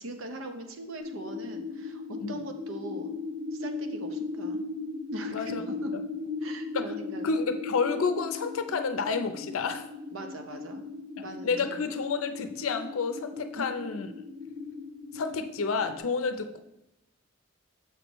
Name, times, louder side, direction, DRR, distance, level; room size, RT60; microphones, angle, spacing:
voice 1, 0.0-3.2 3.5-4.6 5.1-6.0 6.4-7.3 10.1-10.8 11.2-11.6 13.6-13.7, right 1 dB, 75° right, 5 dB, 0.7 m, -41 dB
sound 1, 1.0-16.0, left 3 dB, 55° right, 1.7 m, -37 dB
voice 2, 5.3-5.6 5.9-6.0 6.7-6.9 7.2-9.8 11.2-14.1 15.1-16.6, left 5 dB, 90° left, 8 dB, 0.5 m, -30 dB
6.7 x 6.1 x 3.0 m, 0.84 s
head